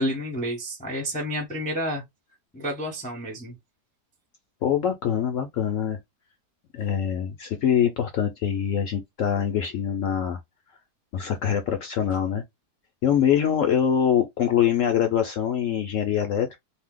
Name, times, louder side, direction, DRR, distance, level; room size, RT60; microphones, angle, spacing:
voice 1, 0.0-2.0 2.5-3.6, equal, 10° left, 0.5 m, -29 dB
voice 2, 4.6-6.0 6.7-10.4 11.1-12.4 13.0-16.6, left 9 dB, 70° left, 0.7 m, -24 dB
2.7 x 2.0 x 3.6 m
omnidirectional pair, 1.8 m